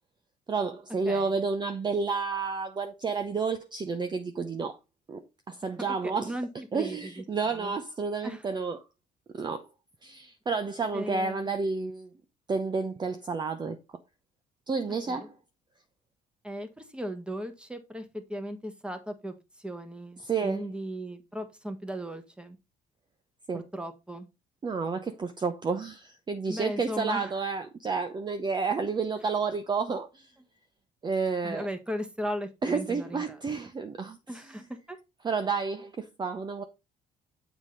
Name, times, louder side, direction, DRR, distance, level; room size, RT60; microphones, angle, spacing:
voice 1, 0.5-4.8 5.1-6.3 6.7-8.8 9.3-9.7 10.0-12.1 12.5-13.8 14.7-15.3 20.2-20.6 23.5-23.6 24.6-30.3 31.0-31.7 32.6-34.2 35.2-36.6, right 4 dB, 25° right, 0.7 m, -30 dB
voice 2, 5.9-6.5 6.7-7.7 8.2-8.5 10.9-11.5 15.1-15.3 16.4-22.6 23.5-24.3 26.5-27.3 29.2-29.3 31.4-33.4 34.3-35.0, equal, 5° right, 1.3 m, -37 dB
7.4 x 5.0 x 3.8 m
cardioid pair, 110°, 17 cm